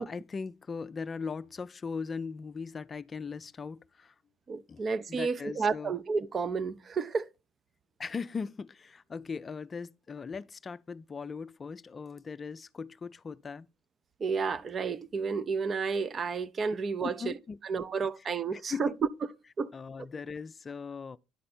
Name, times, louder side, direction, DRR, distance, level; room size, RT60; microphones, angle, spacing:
voice 1, 0.0-4.2 4.7-4.8 5.1-5.9 8.0-13.7 17.0-17.8 18.2-18.3 18.5-18.9 19.7-21.2, left 5 dB, 35° left, 0.4 m, -39 dB
voice 2, 4.5-7.3 14.2-17.3 17.7-18.9 19.2-19.3 19.6-19.7, right 5 dB, 40° right, 0.6 m, -31 dB
11.0 x 4.3 x 4.2 m
hypercardioid pair, 60°, 0 cm